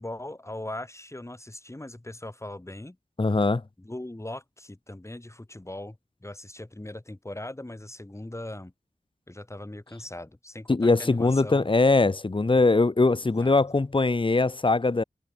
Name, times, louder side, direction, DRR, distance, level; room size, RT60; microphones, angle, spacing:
voice 1, 0.0-3.0 3.8-8.7 9.3-11.7 13.4-13.5, left 1 dB, 20° left, 4.7 m, -39 dB
voice 2, 3.2-3.6 10.7-15.0, left 3 dB, 40° left, 1.4 m, -21 dB
wide cardioid pair, 75°, 13 cm